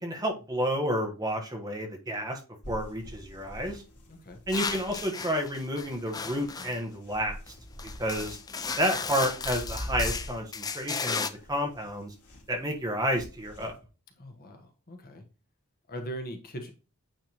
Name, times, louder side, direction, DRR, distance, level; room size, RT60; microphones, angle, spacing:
voice 1, 0.0-2.4 2.7-3.8 4.5-7.4 8.0-8.4 8.8-12.1 12.5-13.7, equal, 15° right, 2 dB, 1.2 m, -30 dB
sound 1, 2.6-13.8, equal, 85° left, 2.6 m, -44 dB
voice 2, 4.1-4.4 14.2-15.2 15.9-16.7, right 1 dB, 40° left, 4 dB, 1.1 m, -40 dB
sound 2, 4.5-6.8 7.5-7.6 7.8-11.3, left 5 dB, 15° left, 0.4 m, -34 dB
9.0 x 3.5 x 3.0 m, 0.33 s
head